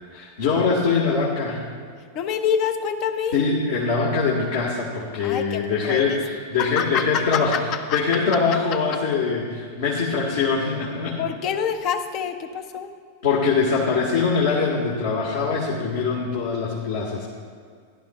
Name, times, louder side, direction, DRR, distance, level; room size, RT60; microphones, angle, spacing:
voice 1, 0.0-1.6 3.3-7.5 7.9-11.2 13.2-17.3, left 5 dB, 55° left, -4 dB, 1.6 m, -23 dB
voice 2, 2.1-3.4 5.2-6.2 6.6-8.0 11.2-13.0, left 8 dB, 40° left, 8 dB, 0.7 m, -26 dB
15.5 x 11.5 x 2.4 m, 2.1 s
figure-of-eight pair, 90°, 0 cm